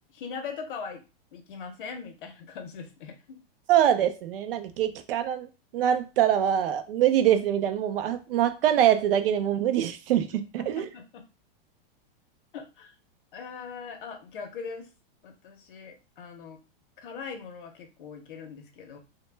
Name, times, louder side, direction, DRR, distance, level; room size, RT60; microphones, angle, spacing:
voice 1, 0.1-1.0 1.3-3.4 10.6-11.3 12.5-12.9 13.3-14.9 15.2-16.6 17.0-19.0, left 5 dB, 60° left, 5 dB, 0.6 m, -40 dB
voice 2, 3.7-5.5 5.7-10.9, right 10 dB, 70° right, 9 dB, 0.5 m, -24 dB
2.1 x 2.1 x 3.1 m, 0.30 s
supercardioid pair, 180°, 30 cm